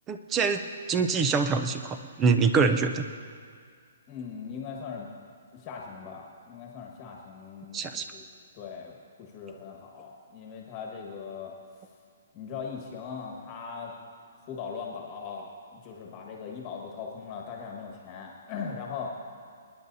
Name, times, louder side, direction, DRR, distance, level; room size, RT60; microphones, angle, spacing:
voice 1, 0.1-0.6 0.9-3.0 7.7-8.0, right 5 dB, 15° right, 8 dB, 0.5 m, -25 dB
voice 2, 4.1-5.1 5.5-8.2 8.5-11.5 12.3-13.9 14.4-19.1, left 6 dB, 25° left, 0 dB, 1.5 m, -39 dB
27.5 x 10.0 x 2.7 m, 2.1 s
hypercardioid pair, 165°, 0 cm